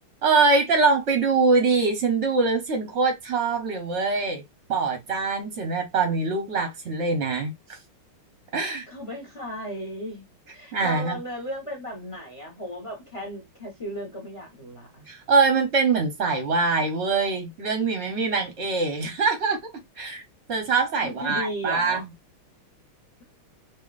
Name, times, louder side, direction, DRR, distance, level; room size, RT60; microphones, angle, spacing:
voice 1, 0.2-4.4 4.7-7.8 8.5-8.9 10.7-11.2 15.1-19.6 20.0-20.2 20.5-22.0, right 4 dB, 50° right, 0.9 m, -23 dB
voice 2, 8.9-15.1 21.0-22.0, equal, 20° left, 0.9 m, -35 dB
5.5 x 2.8 x 2.4 m
omnidirectional pair, 2.3 m